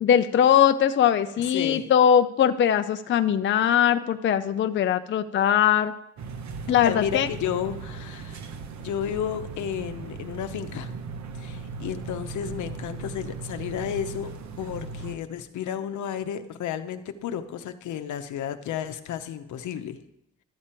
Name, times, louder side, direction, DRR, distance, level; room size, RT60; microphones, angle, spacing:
voice 1, 0.0-5.9 6.7-7.3, left 9 dB, 40° left, 9 dB, 0.5 m, -21 dB
voice 2, 1.4-1.9 6.8-8.4 8.8-10.9 11.4-20.0, left 9 dB, 75° left, 9 dB, 0.8 m, -32 dB
sound 1, 6.2-15.2, right 4 dB, 65° right, 0.9 m, -38 dB
12.0 x 7.4 x 4.4 m, 0.82 s
cardioid pair, 90°, 30 cm